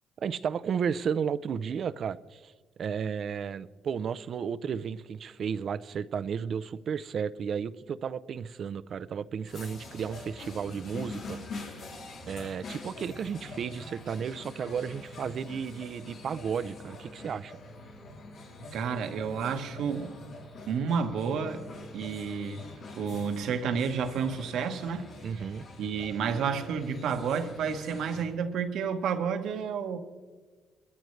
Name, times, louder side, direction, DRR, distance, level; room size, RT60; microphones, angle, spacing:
voice 1, 0.2-2.5 2.8-11.7 12.3-17.6 25.2-25.6, right 7 dB, 55° right, 0.5 m, -33 dB
sound 1, 9.5-28.2, left 2 dB, 80° left, 3.4 m, -45 dB
voice 2, 18.7-20.1 20.7-21.7 21.9-25.1 25.3-25.5 25.8-30.0, right 6 dB, 80° right, 1.2 m, -31 dB
21.5 x 14.0 x 3.2 m
cardioid pair, 90°, 0 cm